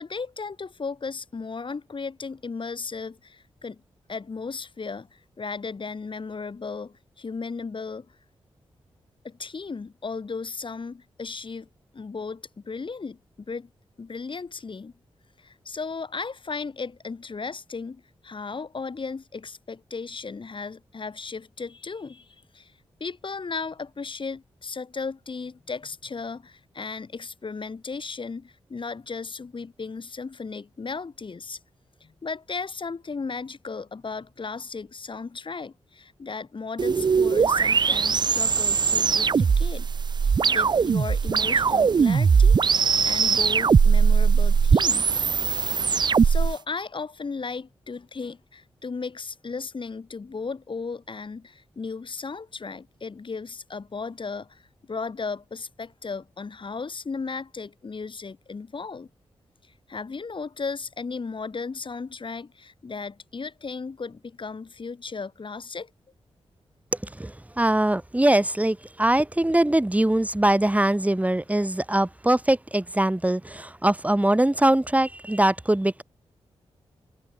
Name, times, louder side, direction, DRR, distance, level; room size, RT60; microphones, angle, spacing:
voice 1, 0.0-3.8 4.1-8.2 9.2-11.7 11.9-13.7 14.0-14.9 15.4-22.7 23.0-31.6 32.0-39.9 40.2-42.6 43.0-45.1 45.9-59.1 59.9-65.9, left 4 dB, 50° left, 2.3 m, -35 dB
sound 1, 36.8-46.5, right 6 dB, 45° right, 0.4 m, -20 dB
voice 2, 67.0-76.0, right 1 dB, 15° right, 1.9 m, -22 dB
supercardioid pair, 45°, 11 cm